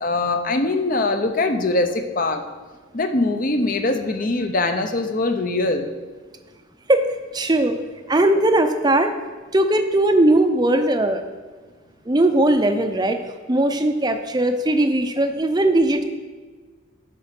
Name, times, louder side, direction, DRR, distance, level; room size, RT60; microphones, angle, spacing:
voice 1, 0.0-2.4 2.9-5.9, left 2 dB, 40° left, 7 dB, 0.8 m, -22 dB
voice 2, 7.3-7.8 8.1-9.1 9.5-11.2 12.1-13.2 13.5-16.0, right 1 dB, 20° right, 7 dB, 0.6 m, -19 dB
11.5 x 4.9 x 6.0 m, 1.4 s
head